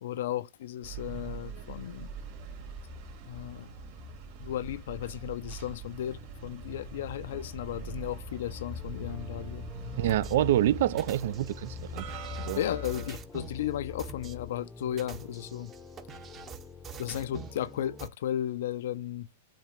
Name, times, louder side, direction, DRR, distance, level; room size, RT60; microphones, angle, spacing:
voice 1, 0.0-2.1 3.3-3.7 4.4-9.6 12.6-15.7 17.0-19.3, left 11 dB, 70° left, 0.4 m, -35 dB
sound 1, 0.8-13.2, right 1 dB, 50° right, 2.3 m, -42 dB
sound 2, 8.5-18.1, left 5 dB, 15° left, 0.6 m, -47 dB
voice 2, 10.0-12.1 12.4-12.6, right 13 dB, 65° right, 0.3 m, -27 dB
sound 3, 10.1-10.4 11.0-13.6 14.0-14.3 14.9-17.6 18.0-18.1, right 7 dB, 25° right, 0.8 m, -45 dB
7.1 x 2.8 x 5.0 m
hypercardioid pair, 130°, 0 cm